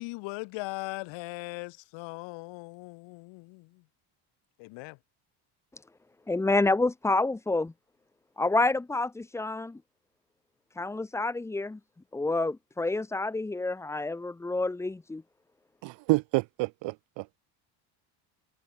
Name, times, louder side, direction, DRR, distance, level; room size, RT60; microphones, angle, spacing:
voice 1, 0.0-3.8 4.6-5.0, left 25 dB, 75° left, 6.2 m, -39 dB
voice 2, 6.3-7.7 8.4-9.8 10.8-11.8 12.1-15.2, left 2 dB, 5° left, 0.9 m, -28 dB
voice 3, 15.8-17.4, right 24 dB, 70° right, 4.8 m, -29 dB
cardioid pair, 175°, 46 cm